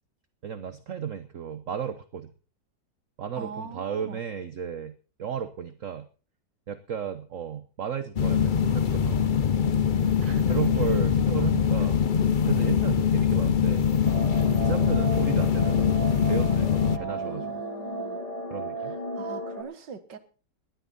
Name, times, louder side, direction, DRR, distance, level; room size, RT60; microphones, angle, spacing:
voice 1, 0.4-2.3 3.2-6.1 6.7-9.5 10.5-12.0 12.4-13.9 14.6-17.6 18.5-19.0, right 8 dB, 50° right, 11 dB, 1.2 m, -34 dB
voice 2, 3.4-4.2 10.2-10.4 17.0-18.2 19.1-20.2, right 5 dB, 75° right, 10 dB, 2.1 m, -42 dB
sound 1, 8.2-17.0, left 7 dB, 90° left, 0.4 m, -23 dB
sound 2, 14.1-19.6, right 1 dB, 20° left, 3.6 m, -34 dB
19.5 x 12.0 x 4.2 m, 0.38 s
omnidirectional pair, 1.9 m